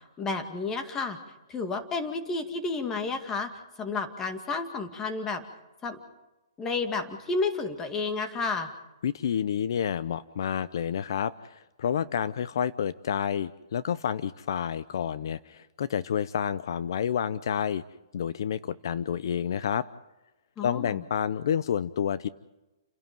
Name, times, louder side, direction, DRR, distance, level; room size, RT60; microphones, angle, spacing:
voice 1, 0.2-1.2 1.5-3.5 3.8-5.4 5.8-6.0 6.6-8.7 20.6-21.0, left 4 dB, 15° left, 6 dB, 2.2 m, -31 dB
voice 2, 9.0-17.8 18.1-19.9 20.6-22.3, left 8 dB, 60° left, 16 dB, 0.7 m, -29 dB
30.0 x 11.5 x 9.2 m, 1.0 s
hypercardioid pair, 150°, 2 cm